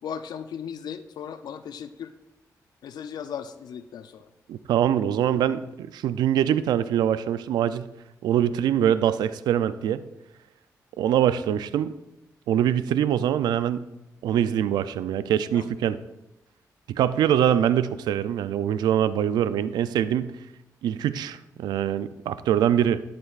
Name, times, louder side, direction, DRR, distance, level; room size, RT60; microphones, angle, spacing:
voice 1, 0.0-2.1 2.8-4.3 15.5-15.7, left 8 dB, 80° left, 11 dB, 0.5 m, -37 dB
voice 2, 4.5-7.9 8.2-10.0 11.0-11.9 12.5-13.8 14.2-16.0 16.9-20.3 20.8-23.0, right 10 dB, 90° right, 14 dB, 0.4 m, -23 dB
12.0 x 11.5 x 2.4 m, 0.93 s
cardioid pair, 65°, 7 cm